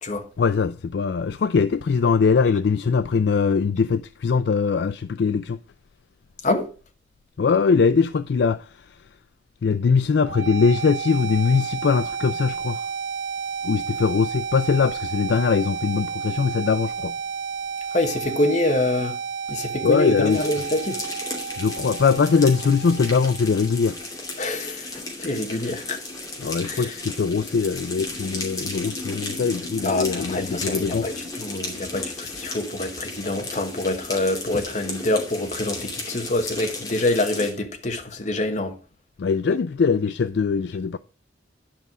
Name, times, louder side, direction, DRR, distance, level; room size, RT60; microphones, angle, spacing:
voice 1, 0.4-5.6 7.4-8.8 9.6-12.8 13.6-17.1 19.8-20.4 21.6-24.0 26.4-31.1 39.2-41.0, left 5 dB, 60° left, 0.4 m, -21 dB
sound 1, 10.2-24.2, right 6 dB, 85° right, 0.6 m, -32 dB
voice 2, 17.9-19.2 19.5-21.0 24.4-24.9 25.2-26.0 26.6-26.9 29.8-38.8, left 2 dB, 40° left, 1.2 m, -26 dB
sound 2, 20.3-37.5, left 2 dB, 20° left, 2.5 m, -34 dB
10.5 x 5.5 x 6.1 m
head